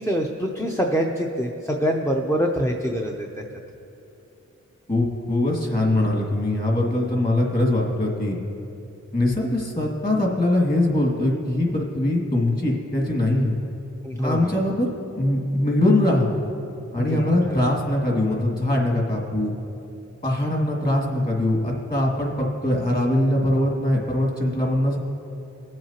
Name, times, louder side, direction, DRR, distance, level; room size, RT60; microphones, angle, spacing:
voice 1, 0.0-3.4 14.0-14.6 17.0-17.6, equal, 10° left, 0 dB, 0.6 m, -25 dB
voice 2, 4.9-8.4 9.1-13.5 14.2-14.9 15.2-16.3 16.9-19.5 20.2-25.0, left 1 dB, 30° left, -1 dB, 2.2 m, -22 dB
19.5 x 7.7 x 2.9 m, 2.7 s
wide cardioid pair, 95°, 30 cm